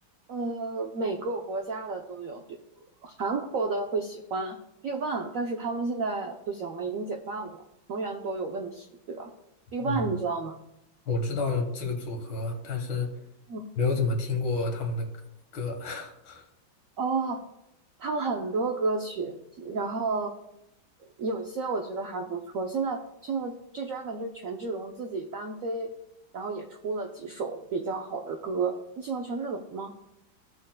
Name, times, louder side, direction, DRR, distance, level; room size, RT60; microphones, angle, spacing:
voice 1, 0.3-2.6 3.0-4.6 4.8-9.3 9.7-10.5 13.5-13.7 17.0-17.4 18.0-20.3 21.0-25.9 26.3-29.9, right 3 dB, 70° right, 3 dB, 0.7 m, -32 dB
voice 2, 11.1-13.1 13.8-15.1 15.5-16.4, left 3 dB, 75° left, 4 dB, 2.1 m, -29 dB
15.0 x 6.2 x 2.2 m, 0.87 s
omnidirectional pair, 2.2 m